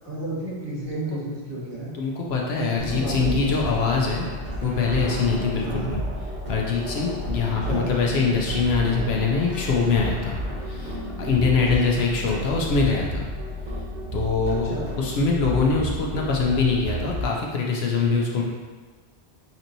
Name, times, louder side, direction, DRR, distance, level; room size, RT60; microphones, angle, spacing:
voice 1, 0.0-1.9 2.5-3.8 5.6-6.0 7.7-7.9 14.7-14.9, right 1 dB, 25° right, -11 dB, 1.6 m, -32 dB
voice 2, 1.9-4.3 4.6-6.0 6.5-10.4 10.6-13.3 14.1-18.4, left 4 dB, 75° left, -1 dB, 0.9 m, -23 dB
sound 1, 2.8-17.2, equal, 50° right, 0.9 m, -31 dB
5.3 x 2.9 x 2.6 m, 1.4 s
omnidirectional pair, 1.1 m